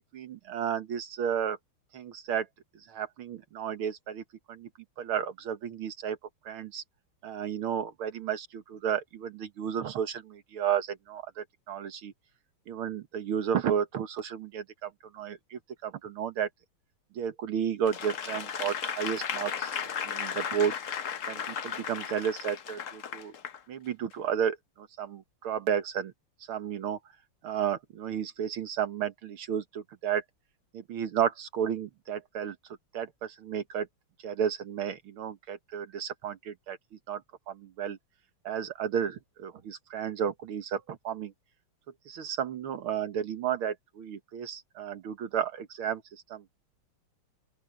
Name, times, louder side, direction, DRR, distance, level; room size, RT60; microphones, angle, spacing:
voice 1, 0.1-1.6 1.9-2.5 2.9-4.7 5.0-6.2 6.5-6.8 7.2-12.1 12.7-16.5 17.2-19.7 20.0-20.7 21.3-23.3 23.7-26.1 26.5-27.0 27.4-30.2 30.7-32.6 32.9-33.9 34.2-36.8 37.1-37.2 37.5-38.0 38.5-41.3 42.1-46.0 46.3-46.4, right 8 dB, 75° right, 2.2 m, -32 dB
Applause / Crowd, 17.8-23.6 24.1-24.2, left 7 dB, 50° left, 1.0 m, -35 dB
open air
omnidirectional pair, 2.4 m